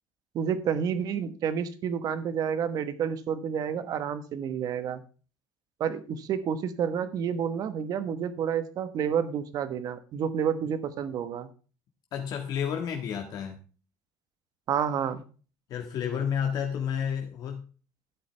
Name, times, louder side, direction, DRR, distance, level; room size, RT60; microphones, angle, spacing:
voice 1, 0.3-5.0 5.8-11.5 14.7-15.2, right 8 dB, 45° right, 12 dB, 1.3 m, -29 dB
voice 2, 12.1-13.6 15.7-17.6, left 8 dB, 50° left, 3 dB, 1.7 m, -31 dB
12.5 x 8.3 x 3.4 m, 0.37 s
cardioid pair, 140°, 8 cm